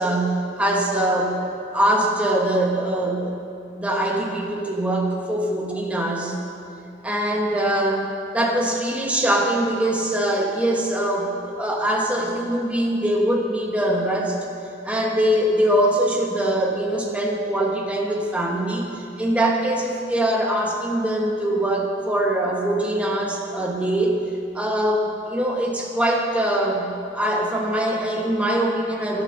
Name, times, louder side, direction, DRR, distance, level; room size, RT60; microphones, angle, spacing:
voice 1, 0.0-1.4 1.7-3.3 3.8-6.4 7.0-8.1 8.3-14.4 14.8-18.9 19.2-24.2 24.5-29.2, right 1 dB, 5° right, -1 dB, 1.1 m, -22 dB
11.5 x 8.2 x 6.7 m, 2.6 s
head